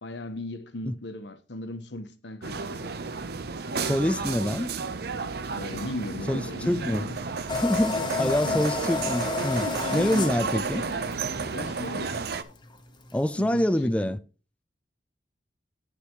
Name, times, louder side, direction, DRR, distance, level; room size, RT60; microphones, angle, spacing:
voice 1, 0.0-2.9 5.5-7.2 7.9-8.7 9.9-10.6 11.5-12.2 13.4-14.2, left 1 dB, 70° left, 1.2 m, -37 dB
sound 1, 2.4-12.4, right 4 dB, 60° right, 0.8 m, -32 dB
voice 2, 3.8-4.7 6.3-6.4 6.7-7.1 7.5-10.8 13.1-14.2, left 1 dB, 5° left, 0.3 m, -25 dB
sound 2, 7.5-13.5, left 4 dB, 25° left, 1.0 m, -32 dB
10.0 x 9.5 x 3.1 m
head